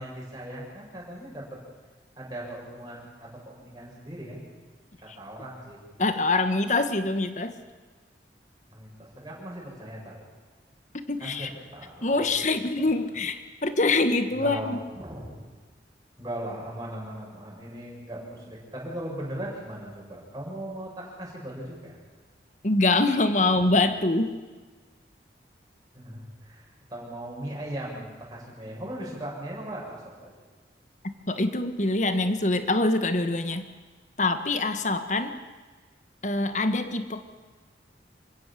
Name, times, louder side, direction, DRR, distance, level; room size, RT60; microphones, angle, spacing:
voice 1, 0.0-1.5 2.2-4.4 5.0-5.8 8.7-10.2 11.2-12.4 12.8-12.9 14.3-15.4 16.2-22.0 23.5-23.6 25.9-26.6 26.9-30.3, right 1 dB, 20° right, -4 dB, 7.4 m, -38 dB
voice 2, 6.0-7.6 11.1-11.5 12.0-14.8 22.6-24.3 31.3-33.7 34.2-35.3 36.2-37.2, left 2 dB, 40° left, 9 dB, 1.5 m, -24 dB
27.5 x 16.0 x 7.7 m, 1.4 s
head